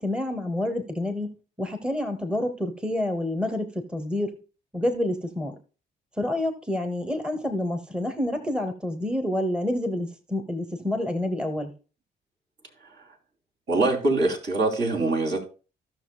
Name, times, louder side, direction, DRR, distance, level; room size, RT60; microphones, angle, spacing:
voice 1, 0.0-4.4 4.7-5.6 6.2-11.7, left 1 dB, 5° right, 1.0 m, -28 dB
voice 2, 13.7-15.4, right 2 dB, 55° right, 3.0 m, -23 dB
16.0 x 6.0 x 2.3 m
cardioid pair, 90°, 20 cm